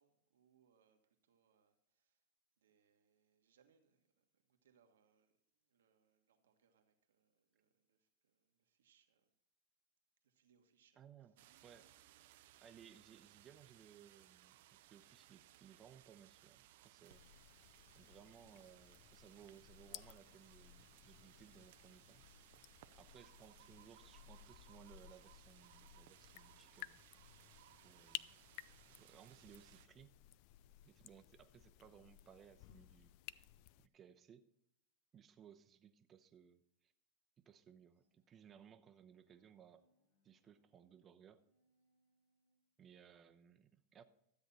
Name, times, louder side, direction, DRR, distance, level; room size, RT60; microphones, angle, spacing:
voice 1, 0.0-2.2 2.6-9.3 10.2-11.5, right 7 dB, 85° right, 5 dB, 1.4 m, -77 dB
voice 2, 11.0-11.3 11.6-11.9 12.6-17.2 17.9-22.2 23.0-27.0 27.8-28.3 28.9-30.1 30.8-33.5 33.8-34.5 35.1-36.9 37.4-39.8 40.2-41.4 42.8-44.0, right 8 dB, 30° right, 10 dB, 0.8 m, -62 dB
sound 1, 11.4-29.9, right 14 dB, 70° right, 0.6 m, -65 dB
sound 2, 17.1-33.9, left 16 dB, 55° left, 0.3 m, -57 dB
Bowed string instrument, 37.9-42.8, left 1 dB, 80° left, 3.0 m, -83 dB
13.0 x 8.0 x 4.1 m, 0.77 s
hypercardioid pair, 110°, 0 cm